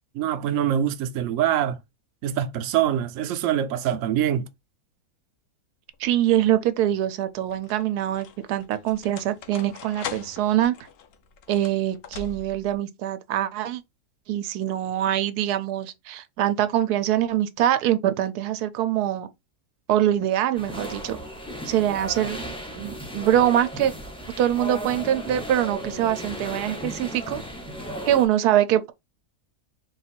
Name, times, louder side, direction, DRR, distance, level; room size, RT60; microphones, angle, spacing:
voice 1, 0.1-1.8 2.2-4.5, right 10 dB, 70° right, 0.9 m, -24 dB
sound 1, 5.9-6.4 7.3-12.8, left 7 dB, 65° left, 1.0 m, -41 dB
voice 2, 6.0-10.7 11.5-13.8 14.3-19.3 19.9-21.2 21.6-23.9 24.4-27.4 28.1-28.9, right 11 dB, 85° right, 1.1 m, -24 dB
sound 2, 20.5-28.3, equal, 5° left, 0.5 m, -35 dB
3.8 x 2.4 x 4.2 m
omnidirectional pair, 1.6 m